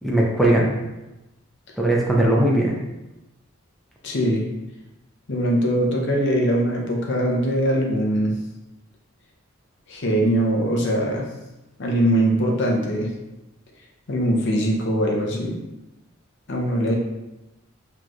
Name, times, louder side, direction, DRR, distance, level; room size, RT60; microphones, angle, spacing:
voice 1, 0.0-0.7 1.8-2.8, right 1 dB, ahead, -3 dB, 0.6 m, -19 dB
voice 2, 4.0-4.4 5.3-8.4 9.9-11.3 11.8-13.1 14.1-15.6 16.5-17.0, right 1 dB, 60° left, 0 dB, 0.7 m, -21 dB
4.5 x 3.0 x 2.4 m, 0.99 s
head